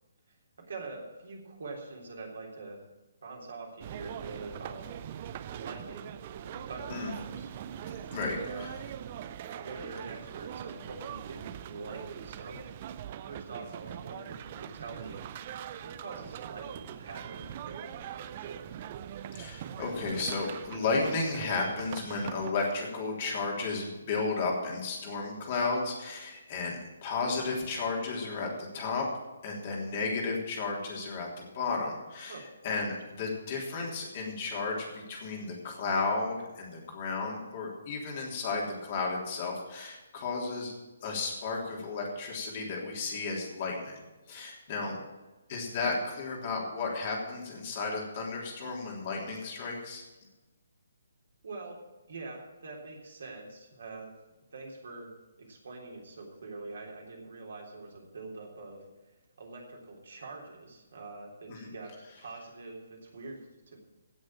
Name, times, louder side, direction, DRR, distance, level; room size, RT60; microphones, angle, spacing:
voice 1, 0.3-2.8 3.2-4.8 5.5-7.5 8.1-8.7 9.5-12.6 13.3-15.2 15.8-18.7 32.3-32.5 44.8-45.0 51.4-51.8 52.1-54.2 54.5-55.1 55.4-58.8 59.4-63.8, right 3 dB, 55° right, -1 dB, 3.5 m, -44 dB
sound 1, 3.8-22.5, right 10 dB, 30° right, 0.6 m, -42 dB
voice 2, 8.1-8.7 19.3-29.1 29.4-40.7 41.0-44.0 44.3-44.9 45.5-50.0 61.5-61.7, left 3 dB, 35° left, -1 dB, 3.3 m, -33 dB
16.5 x 6.5 x 7.3 m, 1.1 s
figure-of-eight pair, 135°, 0 cm